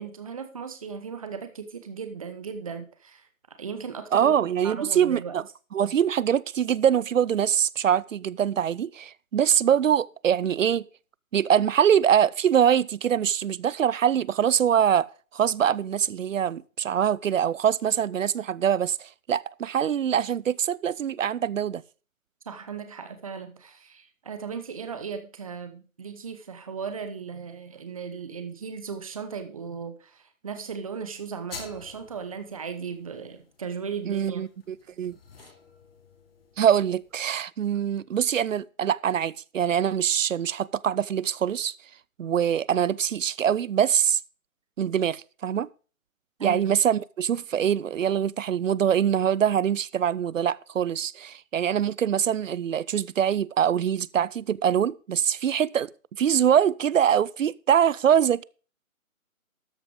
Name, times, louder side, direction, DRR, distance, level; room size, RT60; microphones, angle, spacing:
voice 1, 0.0-4.3 4.6-5.4 22.5-34.4 46.4-46.7, right 6 dB, 25° right, 1.0 m, -37 dB
voice 2, 4.1-5.4 5.7-10.9 11.3-21.8 34.1-35.2 36.6-41.7 42.2-44.2 44.8-45.7 46.4-58.4, right 9 dB, 65° right, 0.6 m, -24 dB
sound 1, 31.5-37.4, left 5 dB, 45° left, 2.5 m, -49 dB
13.0 x 5.9 x 5.2 m
hypercardioid pair, 165°, 42 cm